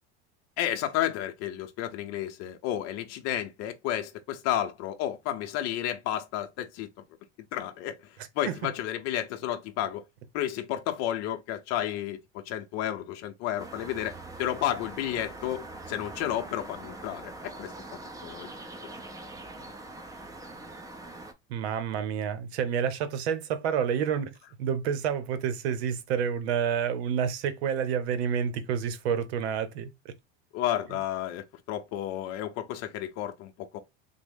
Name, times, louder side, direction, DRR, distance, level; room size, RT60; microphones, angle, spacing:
voice 1, 0.6-6.9 7.5-8.0 8.4-10.0 10.3-17.7 18.2-18.5 30.5-33.8, left 11 dB, 55° left, 0.6 m, -32 dB
sound 1, 13.6-21.3, right 2 dB, 10° right, 0.6 m, -43 dB
voice 2, 21.5-24.3 24.6-30.1, right 7 dB, 90° right, 0.7 m, -29 dB
3.4 x 2.1 x 3.4 m
supercardioid pair, 120°, 32 cm